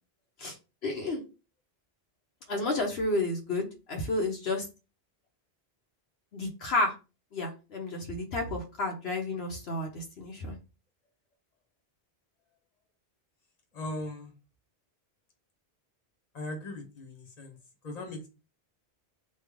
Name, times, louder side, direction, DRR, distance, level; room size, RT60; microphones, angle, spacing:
voice 1, 0.8-1.2 2.5-4.7 6.3-6.9 7.3-10.6, left 2 dB, 75° left, 2 dB, 1.0 m, -31 dB
voice 2, 13.7-14.3 16.3-17.6 17.8-18.3, left 1 dB, 40° left, 3 dB, 1.1 m, -38 dB
3.2 x 2.5 x 3.5 m, 0.29 s
omnidirectional pair, 1.1 m